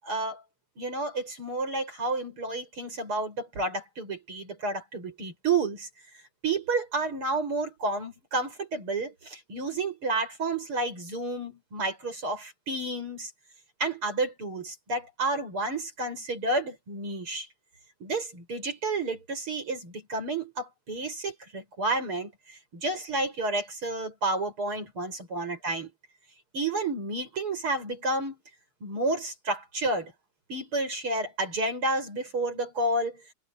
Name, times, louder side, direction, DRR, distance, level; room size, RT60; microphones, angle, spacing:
voice 1, 0.0-0.4 0.8-5.9 6.4-13.3 13.8-17.5 18.0-25.9 26.5-28.4 28.8-30.1 30.5-33.2, right 2 dB, 90° right, 8.9 m, -30 dB
omnidirectional pair, 2.3 m